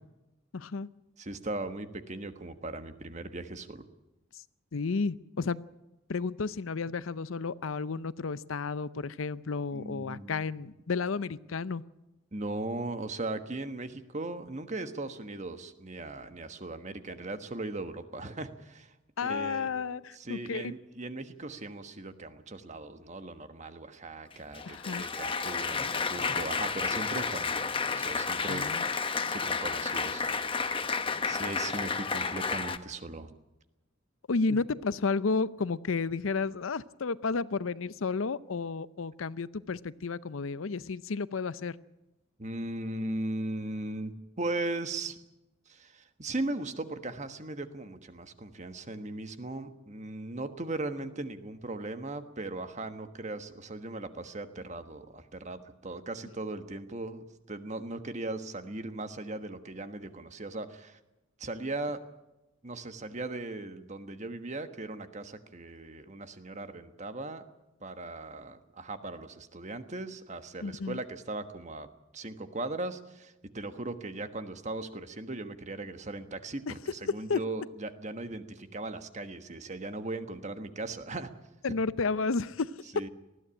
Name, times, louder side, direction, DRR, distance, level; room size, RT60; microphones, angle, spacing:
voice 1, 0.5-0.9 4.7-5.6 6.1-11.8 19.2-20.7 24.7-25.1 28.4-28.8 34.3-41.8 70.6-71.0 76.7-76.8 77.3-77.4 81.6-82.7, left 4 dB, 80° left, 17 dB, 0.6 m, -32 dB
voice 2, 1.2-3.8 9.7-10.5 12.3-18.9 19.2-19.7 20.1-28.8 29.3-30.2 31.3-33.3 42.4-44.1 44.4-45.2 45.7-61.0 61.4-62.0 62.6-67.4 67.8-71.9 72.1-81.3 82.9-83.1, right 2 dB, 35° right, 9 dB, 1.4 m, -38 dB
Applause, 24.3-32.8, left 5 dB, 25° left, 0.9 m, -31 dB
20.0 x 14.5 x 9.9 m, 0.99 s
head